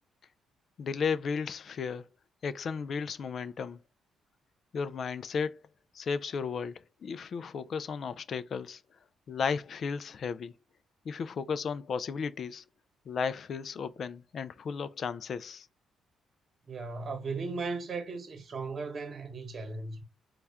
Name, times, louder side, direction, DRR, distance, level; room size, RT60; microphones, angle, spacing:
voice 1, 0.8-2.1 2.4-3.8 4.7-5.6 5.9-8.8 9.3-10.5 11.1-12.6 13.1-15.7, left 6 dB, 55° left, 0.3 m, -34 dB
voice 2, 16.7-20.1, right 4 dB, 40° right, 1.1 m, -37 dB
4.2 x 2.3 x 3.4 m
cardioid pair, 90°, 0 cm